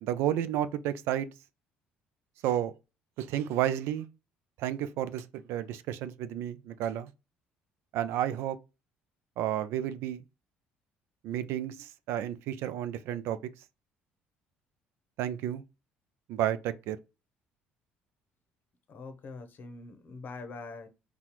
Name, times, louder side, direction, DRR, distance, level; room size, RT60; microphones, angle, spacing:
voice 1, 0.0-1.3 2.4-2.7 3.2-4.1 4.6-7.1 7.9-8.6 9.4-10.2 11.2-13.4 15.2-15.6 16.3-17.0, right 11 dB, 75° right, 0.4 m, -31 dB
voice 2, 18.9-20.9, left 3 dB, 45° left, 0.8 m, -43 dB
4.0 x 2.3 x 2.9 m
supercardioid pair, 75°, 4 cm